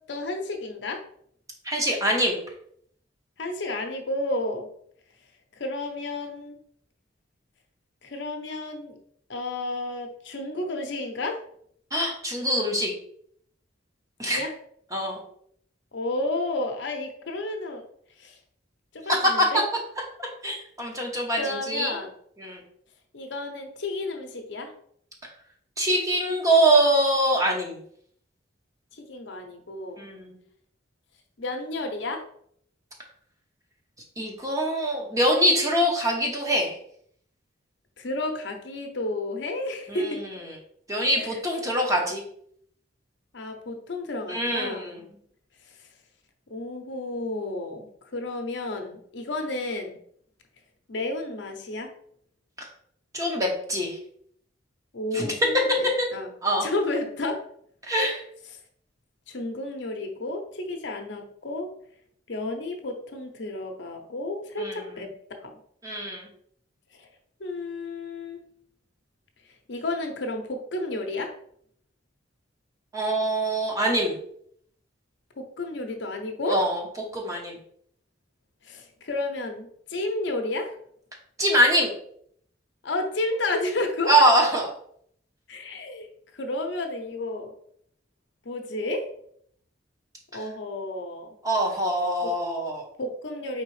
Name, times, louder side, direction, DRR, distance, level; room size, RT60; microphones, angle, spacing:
voice 1, 0.1-1.0 3.4-4.7 5.6-6.6 8.0-9.0 9.3-11.4 14.3-14.5 15.9-17.8 18.2-18.4 18.9-19.6 21.4-22.1 23.1-24.7 28.9-30.0 31.4-32.2 38.0-40.2 41.1-41.4 43.3-45.0 46.5-47.9 48.1-50.0 50.9-51.9 54.9-55.5 55.8-56.3 56.6-57.4 58.0-58.1 59.3-61.7 62.3-65.1 65.4-65.5 67.0-67.1 67.4-68.4 69.7-71.3 75.4-76.6 78.6-80.7 82.8-84.1 85.5-86.1 86.3-87.5 88.4-89.1 90.3-91.3 92.2-92.3 93.0-93.6, left 2 dB, 65° left, 4 dB, 0.7 m, -31 dB
voice 2, 1.6-2.4 11.9-12.9 14.2-14.4 14.9-15.2 19.1-19.6 20.2-21.9 22.4-22.6 25.8-27.8 30.0-30.4 34.2-36.7 39.9-40.2 40.9-42.2 44.3-45.0 52.6-52.7 53.1-54.0 55.1-55.3 56.0-56.1 56.4-56.7 57.9-58.2 64.6-64.8 65.8-66.3 72.9-74.1 76.5-76.8 77.1-77.5 81.4-81.9 84.1-84.7 91.4-92.8, right 1 dB, 15° right, 0 dB, 0.8 m, -24 dB
4.7 x 3.6 x 3.2 m, 0.65 s
head